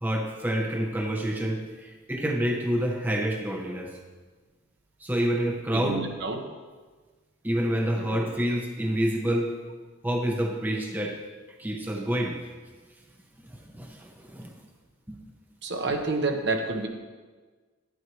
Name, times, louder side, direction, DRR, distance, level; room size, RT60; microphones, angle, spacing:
voice 1, 0.0-4.0 5.0-6.0 7.4-9.6 10.0-11.2 11.6-12.4 13.4-14.6 15.1-15.2, right 1 dB, 10° right, 1 dB, 0.7 m, -28 dB
voice 2, 5.7-6.4 7.9-8.2 15.6-16.9, right 3 dB, 60° right, 4 dB, 1.0 m, -29 dB
11.0 x 10.5 x 3.1 m, 1.4 s
head